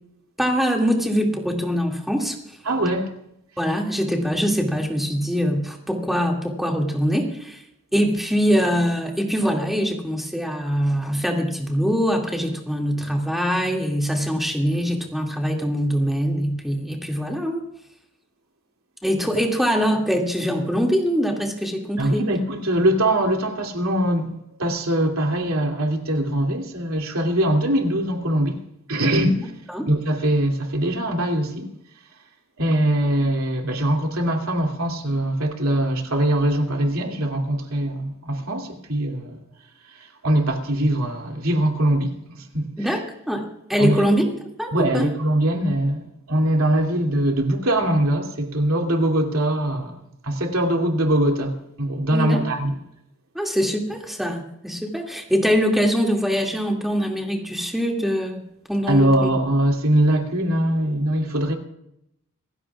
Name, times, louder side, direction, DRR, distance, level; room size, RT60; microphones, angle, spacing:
voice 1, 0.4-2.4 3.6-7.6 7.9-17.6 19.0-22.3 29.3-29.4 29.7-29.9 42.8-44.2 44.6-45.1 52.1-52.4 53.3-58.4 58.7-59.3, equal, ahead, 2.3 m, -23 dB
voice 2, 2.6-3.1 22.0-24.3 24.6-28.6 28.9-29.5 29.9-31.7 32.6-39.4 40.2-42.8 43.8-44.0 44.7-50.0 50.2-52.8 58.9-61.6, right 1 dB, 85° right, 2.7 m, -22 dB
27.0 x 15.5 x 2.4 m
head